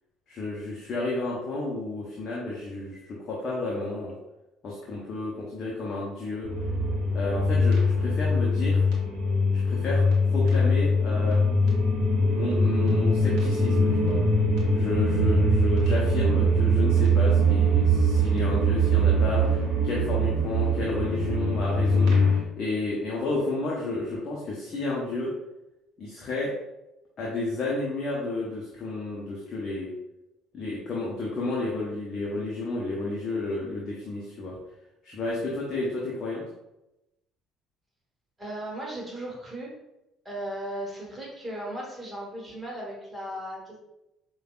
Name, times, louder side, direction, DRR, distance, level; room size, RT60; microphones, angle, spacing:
voice 1, 0.3-4.1 4.6-6.5 7.1-8.9 9.6-11.4 12.3-14.2 14.7-25.3 26.0-26.5 27.2-29.9 30.5-34.6 35.0-36.4, left 2 dB, 40° left, -4 dB, 0.7 m, -31 dB
sound 1, 6.4-22.4, equal, 60° right, 0.9 m, -22 dB
voice 2, 38.4-39.7 40.2-43.8, right 1 dB, 15° right, -4 dB, 1.4 m, -36 dB
4.9 x 2.3 x 2.4 m, 0.91 s
figure-of-eight pair, 50°, 0 cm